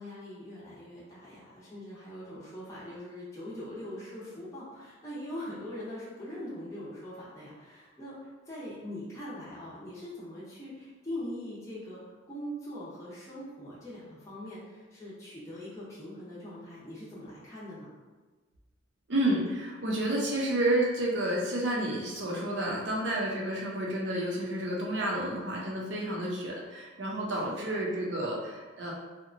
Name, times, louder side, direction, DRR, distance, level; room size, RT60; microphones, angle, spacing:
voice 1, 0.0-8.2 8.5-12.0 12.3-17.9 27.3-27.8, left 1 dB, 15° left, -9 dB, 0.6 m, -42 dB
voice 2, 19.1-28.9, right 1 dB, 60° right, -3 dB, 0.6 m, -30 dB
2.8 x 2.1 x 2.5 m, 1.3 s
head